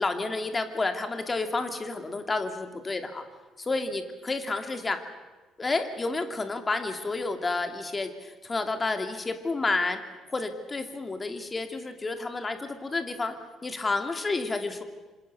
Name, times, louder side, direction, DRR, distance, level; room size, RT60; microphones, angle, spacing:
voice 1, 0.0-3.2 3.6-5.0 5.6-10.0 10.3-13.3 13.6-14.8, left 3 dB, 20° left, 7 dB, 2.6 m, -30 dB
27.0 x 26.5 x 7.0 m, 1.2 s
cardioid pair, 135°, 0 cm